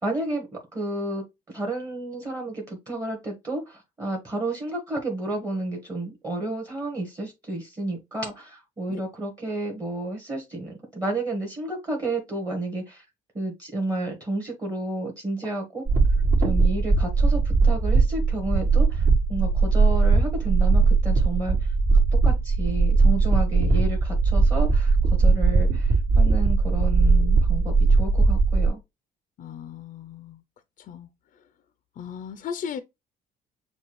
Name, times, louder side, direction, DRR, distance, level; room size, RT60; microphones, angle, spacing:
voice 1, 0.0-13.0 13.3-15.8 16.4-21.7 22.2-28.8, right 2 dB, 20° right, 1.5 m, -31 dB
sound 1, 15.9-28.7, right 4 dB, 50° right, 2.0 m, -19 dB
voice 2, 29.4-30.4 30.8-31.1 31.4-31.5 32.0-32.8, left 7 dB, 50° left, 0.5 m, -36 dB
6.9 x 2.3 x 3.1 m
cardioid pair, 110°, 17 cm